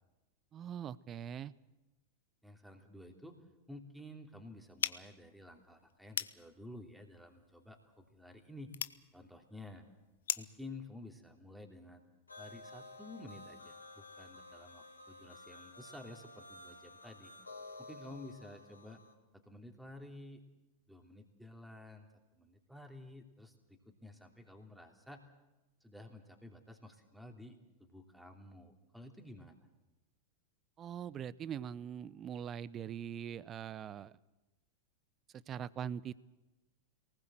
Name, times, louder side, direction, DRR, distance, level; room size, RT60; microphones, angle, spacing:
voice 1, 0.5-1.5 30.8-34.2 35.5-36.1, right 9 dB, 30° right, 20 dB, 0.7 m, -42 dB
voice 2, 2.4-3.4 3.7-8.7 9.1-9.9 10.4-12.0 12.4-17.3 17.8-19.0 19.3-20.4 20.9-22.1 22.3-25.2 25.8-29.7, left 1 dB, ahead, 3 dB, 3.1 m, -52 dB
sound 1, 4.8-10.6, left 9 dB, 65° left, 0.7 m, -42 dB
sound 2, 12.3-19.1, left 2 dB, 80° left, 2.3 m, -52 dB
23.0 x 19.5 x 7.8 m, 1.1 s
figure-of-eight pair, 90°, 0 cm